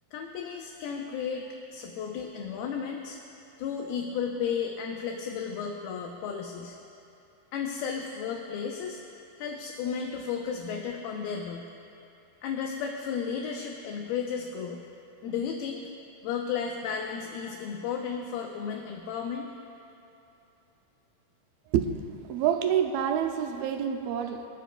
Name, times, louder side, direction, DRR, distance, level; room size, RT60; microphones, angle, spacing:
voice 1, 0.1-3.2 3.6-6.8 7.5-9.0 9.4-11.7 12.4-14.8 15.2-15.9 16.2-19.5, left 6 dB, 80° left, 2.6 m, -33 dB
voice 2, 22.3-24.5, right 9 dB, 80° right, 2.4 m, -27 dB
29.0 x 10.0 x 2.3 m
omnidirectional pair, 4.4 m